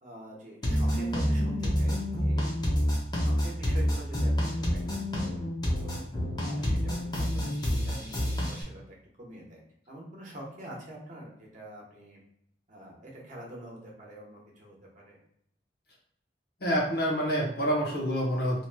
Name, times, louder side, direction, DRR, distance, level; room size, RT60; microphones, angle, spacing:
voice 1, 0.0-2.5 3.2-5.4 5.8-6.0 6.4-9.6 9.9-12.2 12.7-15.2, right 1 dB, 45° right, -3 dB, 0.9 m, -46 dB
sound 1, 0.6-8.6, equal, 25° left, 0.8 m, -28 dB
voice 2, 16.6-18.6, equal, 60° left, -2 dB, 0.9 m, -27 dB
2.9 x 2.8 x 2.2 m, 0.72 s
head